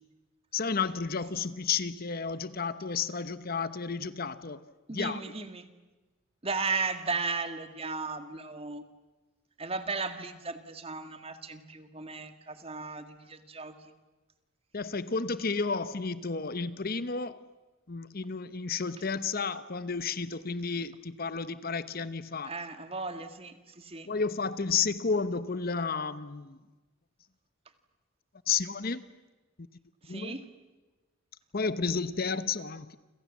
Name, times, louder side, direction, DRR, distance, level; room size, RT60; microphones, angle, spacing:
voice 1, 0.5-4.6 4.9-5.4 14.7-17.5 17.9-22.5 24.1-26.6 28.5-29.1 30.1-30.4 31.5-33.0, left 5 dB, 45° left, 1.0 m, -32 dB
voice 2, 4.9-5.7 6.4-8.8 9.6-13.9 22.4-24.1 30.0-30.4, right 4 dB, 30° right, 2.0 m, -35 dB
29.5 x 27.0 x 7.4 m
head